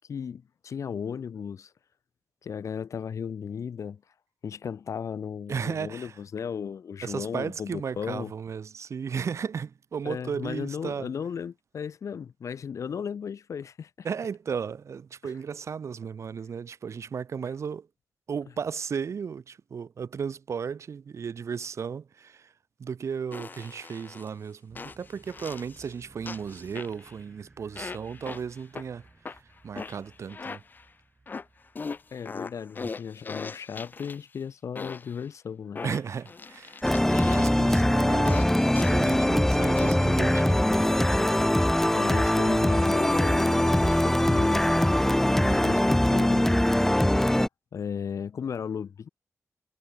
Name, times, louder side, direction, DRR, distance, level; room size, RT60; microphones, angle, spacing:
voice 1, 0.1-1.7 2.4-4.0 4.4-8.3 10.0-13.9 15.2-15.3 32.1-35.8 41.9-44.6 45.4-46.5 47.7-49.1, left 7 dB, 70° left, 3.4 m, -35 dB
voice 2, 5.5-6.2 7.0-11.1 14.0-17.9 18.3-22.5 22.8-30.6 35.8-36.9 37.3-38.5 38.9-40.8 45.4-45.8, right 6 dB, 60° right, 6.5 m, -35 dB
sound 1, 23.3-24.3 24.7-25.9 26.2-27.2 27.7-28.8 29.2-30.9 31.3-34.3 34.7-35.2 35.7-37.8 38.2-39.2 39.7-40.2, left 4 dB, 35° left, 1.2 m, -40 dB
sound 2, 24.7-32.8, right 3 dB, 25° right, 6.5 m, -57 dB
sound 3, 36.8-47.5, left 1 dB, 5° left, 0.9 m, -22 dB
wide cardioid pair, 165°, 5 cm